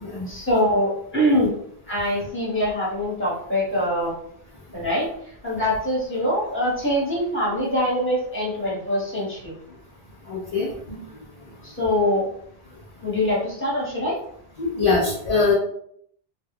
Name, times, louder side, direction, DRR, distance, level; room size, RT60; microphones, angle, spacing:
voice 1, 0.3-1.5 1.9-4.1 4.7-5.1 5.4-9.6 11.6-12.3 13.0-14.1, equal, 10° left, -6 dB, 1.1 m, -23 dB
voice 2, 10.3-11.0 14.6-15.5, left 4 dB, 45° left, -3 dB, 0.5 m, -23 dB
2.3 x 2.2 x 3.4 m, 0.66 s
omnidirectional pair, 1.1 m